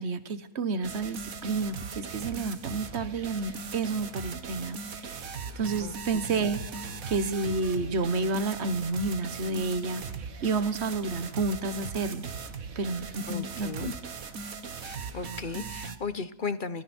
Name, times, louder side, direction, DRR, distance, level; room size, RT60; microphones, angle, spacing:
voice 1, 0.0-6.6 7.1-10.0 10.4-12.2 12.7-13.9, right 3 dB, 50° right, 12 dB, 1.6 m, -30 dB
sound 1, 0.8-16.0, right 5 dB, 75° right, 1.9 m, -39 dB
voice 2, 13.3-13.9 14.8-16.8, left 4 dB, 40° left, 13 dB, 1.0 m, -35 dB
29.0 x 21.0 x 4.5 m, 0.82 s
omnidirectional pair, 1.5 m